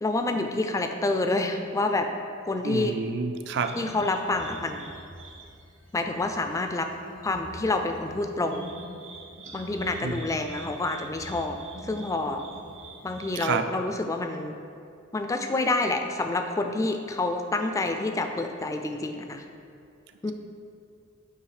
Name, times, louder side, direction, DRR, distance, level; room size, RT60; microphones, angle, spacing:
voice 1, 0.0-2.1 2.5-2.9 3.7-4.8 5.9-6.9 7.2-8.6 9.5-11.6 11.8-12.4 13.0-14.5 15.1-19.4 20.2-20.3, left 2 dB, 15° left, 5 dB, 0.3 m, -28 dB
voice 2, 2.6-3.7 10.0-10.1 13.4-13.6, right 5 dB, 60° right, 8 dB, 0.4 m, -28 dB
sound 1, 3.6-13.5, right 1 dB, 75° right, 1.3 m, -45 dB
8.1 x 3.1 x 4.9 m, 2.5 s
head